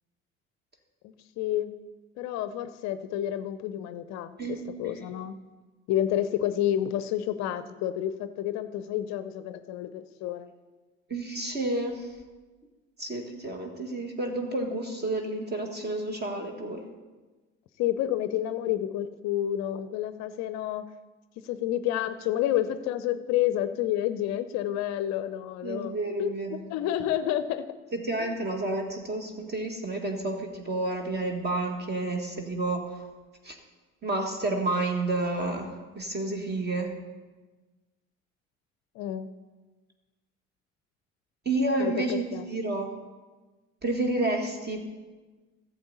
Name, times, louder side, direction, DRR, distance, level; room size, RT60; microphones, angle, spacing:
voice 1, 1.0-1.7 2.2-4.3 4.8-5.3 5.9-10.5 17.8-20.8 21.4-26.4 26.7-27.6 28.2-28.3 39.0-39.3 41.8-42.5, left 12 dB, 45° left, 12 dB, 0.6 m, -29 dB
voice 2, 4.4-5.0 11.1-12.1 13.0-16.8 25.6-26.6 27.9-33.0 33.4-33.6 34.0-36.9 41.4-42.9 43.8-44.8, right 2 dB, 25° right, 3 dB, 1.5 m, -30 dB
15.5 x 7.7 x 4.1 m, 1.3 s
figure-of-eight pair, 60°, 39 cm